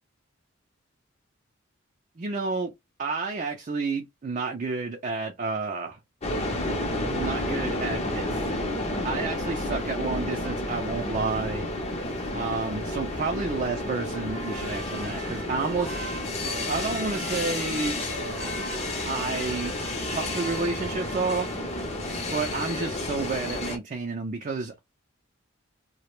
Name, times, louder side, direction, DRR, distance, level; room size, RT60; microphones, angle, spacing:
voice 1, 2.2-2.7 3.0-6.0 7.1-8.4 9.0-11.7 12.3-16.0 16.7-18.0 19.0-19.7 20.1-21.5 22.3-24.8, right 4 dB, 35° right, 0.4 m, -30 dB
sound 1, 6.2-23.8, left 1 dB, 30° left, 0.6 m, -31 dB
Trumpet, 14.3-21.8, right 3 dB, 75° right, 0.7 m, -42 dB
2.3 x 2.1 x 3.0 m
head